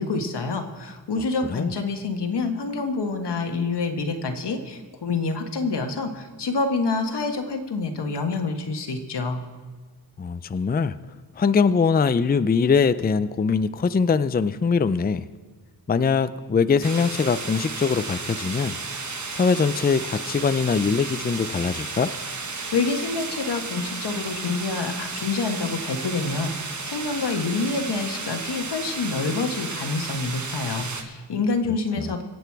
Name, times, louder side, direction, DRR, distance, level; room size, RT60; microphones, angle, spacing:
voice 1, 0.0-9.4 22.5-32.2, left 4 dB, 85° left, 5 dB, 1.5 m, -27 dB
voice 2, 10.2-11.0 11.4-15.3 15.9-18.8 19.3-22.1 32.0-32.1, left 5 dB, 25° left, 13 dB, 0.4 m, -22 dB
sound 1, 16.8-31.0, right 4 dB, 45° right, 1.4 m, -33 dB
24.0 x 8.0 x 4.7 m, 1.3 s
wide cardioid pair, 90°, 40 cm